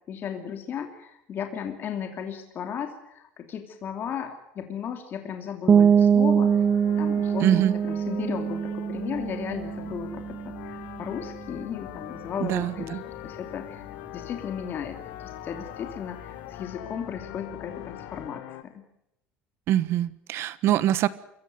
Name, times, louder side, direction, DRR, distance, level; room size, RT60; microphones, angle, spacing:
voice 1, 0.1-6.7 7.0-18.8, left 8 dB, 45° left, 6 dB, 2.8 m, -35 dB
sound 1, 5.7-11.3, right 7 dB, 30° right, 1.1 m, -23 dB
sound 2, 6.4-18.6, left 14 dB, 85° left, 1.8 m, -43 dB
voice 2, 7.4-7.7 12.4-13.0 19.7-21.1, right 12 dB, 60° right, 17 dB, 1.3 m, -23 dB
sound 3, 8.9-18.3, left 7 dB, 65° left, 5.5 m, -49 dB
25.0 x 14.5 x 9.3 m, 0.81 s
cardioid pair, 120°, 5 cm